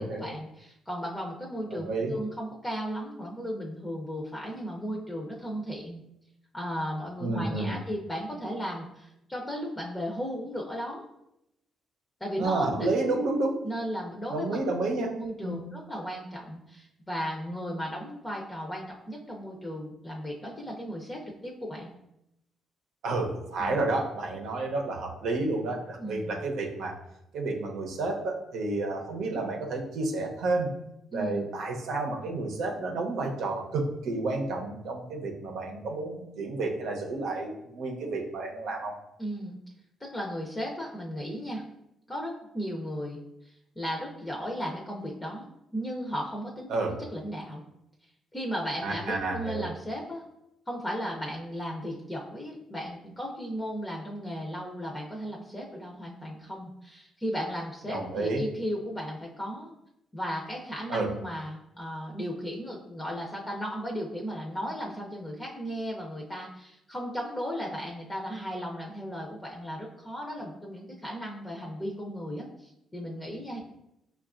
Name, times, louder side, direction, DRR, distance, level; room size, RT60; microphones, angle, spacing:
voice 1, 0.0-6.0 6.5-11.1 12.2-12.9 13.6-14.6 15.2-21.9 23.6-23.8 26.0-26.3 31.1-31.5 39.2-39.6 40.0-41.6 42.1-45.5 45.7-46.7 47.1-47.6 48.3-50.2 50.7-59.7 60.1-73.6, equal, 15° left, -1 dB, 0.6 m, -35 dB
voice 2, 1.7-2.1 7.2-7.8 12.4-13.5 14.3-15.1 15.4-15.6 23.0-27.0 27.3-30.7 31.1-39.0 46.7-47.0 48.8-49.7 57.9-58.4 60.9-61.1, right 2 dB, 80° right, 1 dB, 0.7 m, -30 dB
5.7 x 2.3 x 2.4 m, 0.83 s
cardioid pair, 90°, 0 cm